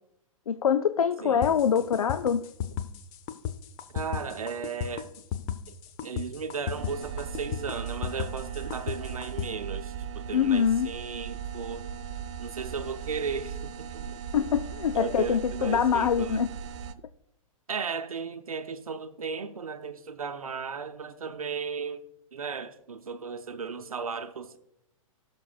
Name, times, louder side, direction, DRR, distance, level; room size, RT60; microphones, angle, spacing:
voice 1, 0.5-2.4 10.3-10.9 14.3-16.5, left 7 dB, 85° left, 0.4 m, -24 dB
voice 2, 1.2-2.1 3.9-5.1 5.7-5.8 6.0-11.8 12.4-14.4 14.9-16.4 17.7-22.0 22.3-24.6, right 5 dB, 85° right, 0.7 m, -35 dB
sound 1, 1.4-9.5, left 10 dB, 40° left, 0.7 m, -34 dB
sound 2, 6.8-16.9, right 8 dB, 55° right, 0.7 m, -38 dB
17.5 x 6.2 x 2.4 m
hypercardioid pair, 115°, 18 cm